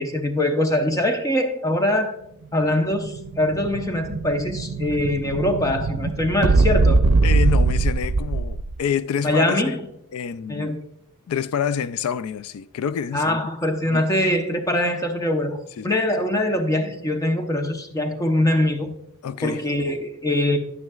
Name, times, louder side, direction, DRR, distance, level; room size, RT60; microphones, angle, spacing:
voice 1, 0.0-2.1 2.5-7.0 9.2-9.8 10.5-10.8 13.1-18.9 19.4-20.6, left 1 dB, 15° left, 0.8 m, -23 dB
Explosion, 2.7-8.8, right 3 dB, 80° right, 0.6 m, -21 dB
voice 2, 7.2-9.8 10.1-10.7 11.3-13.4 13.9-14.1 15.8-15.9 19.2-19.6, left 7 dB, 80° left, 0.3 m, -27 dB
11.0 x 9.3 x 2.4 m
head